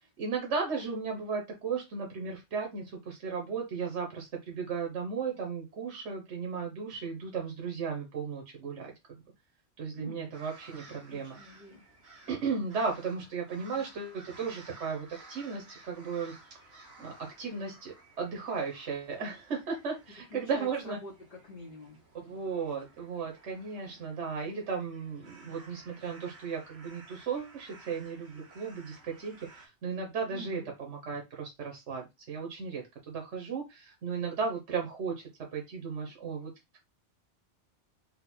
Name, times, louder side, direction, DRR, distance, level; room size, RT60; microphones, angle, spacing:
voice 1, 0.2-8.9 9.8-11.4 12.3-16.3 17.0-21.0 22.2-36.5, right 5 dB, 80° right, 1 dB, 1.2 m, -35 dB
voice 2, 10.0-10.3 10.9-11.8 13.6-13.9 20.3-22.0 30.3-30.7, left 1 dB, 45° left, -1 dB, 0.9 m, -46 dB
sound 1, 10.3-29.7, right 3 dB, 60° right, 1.5 m, -55 dB
4.1 x 2.2 x 4.2 m, 0.22 s
omnidirectional pair, 1.2 m